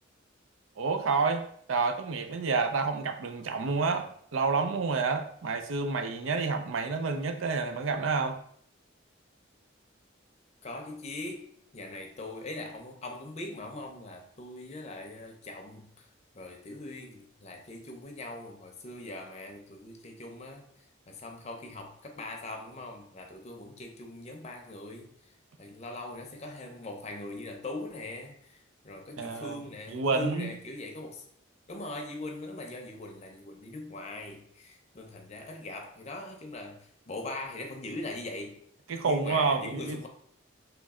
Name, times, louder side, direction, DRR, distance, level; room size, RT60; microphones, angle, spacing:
voice 1, 0.8-8.4 29.2-29.6 29.9-30.5 38.9-40.1, right 4 dB, 80° right, 6 dB, 0.5 m, -29 dB
voice 2, 10.6-16.1 16.3-20.7 21.1-25.1 25.6-31.3 31.7-38.6 39.0-40.1, left 2 dB, 35° left, 3 dB, 0.6 m, -41 dB
3.2 x 3.1 x 3.6 m, 0.63 s
head